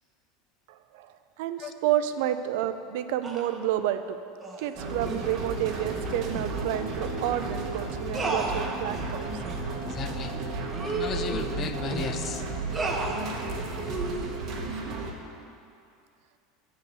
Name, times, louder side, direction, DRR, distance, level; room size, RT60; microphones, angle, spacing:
voice 1, 0.7-4.2 4.6-9.6, right 11 dB, 70° right, 10 dB, 0.4 m, -30 dB
sound 1, 3.2-3.6 4.4-4.7 5.0-5.3 6.3-6.5 6.9-7.0 7.3-7.5 8.1-9.1 9.4-9.6 10.1-10.2 10.7-12.1 12.7-13.2 13.9-14.2, right 3 dB, 15° right, 0.8 m, -33 dB
sound 2, 4.8-15.1, right 3 dB, 45° right, 1.1 m, -33 dB
voice 2, 9.8-10.4 10.8-12.4, left 7 dB, 35° left, 8 dB, 0.5 m, -35 dB
8.2 x 4.0 x 6.8 m, 2.5 s
supercardioid pair, 130°, 0 cm